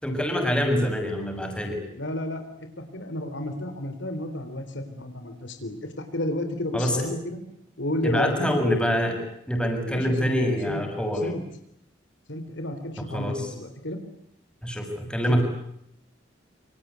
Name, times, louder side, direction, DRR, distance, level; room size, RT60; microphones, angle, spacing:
voice 1, 0.0-1.8 6.7-7.1 8.0-9.1 9.5-11.3 13.1-13.4 14.6-15.4, equal, 5° left, 3 dB, 6.8 m, -25 dB
voice 2, 1.9-7.4 7.8-8.7 9.8-10.4 10.7-10.8 11.2-11.4 12.3-14.0 15.3-15.4, left 1 dB, 70° left, 8 dB, 3.8 m, -32 dB
27.5 x 26.0 x 8.4 m, 0.75 s
head